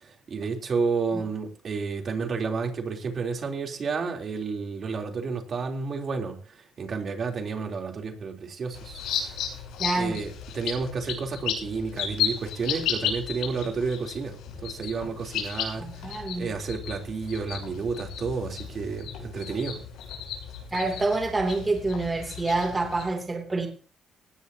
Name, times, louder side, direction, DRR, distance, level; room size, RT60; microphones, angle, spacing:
voice 1, 0.0-6.4 6.8-9.4 10.0-19.8, right 4 dB, 50° right, 3.6 m, -31 dB
sound 1, 8.7-23.0, left 8 dB, 90° left, 7.7 m, -34 dB
voice 2, 9.8-10.2 15.8-16.5 20.7-23.7, right 3 dB, 25° right, 3.0 m, -27 dB
19.0 x 17.0 x 2.9 m
cardioid pair, 90°, 0 cm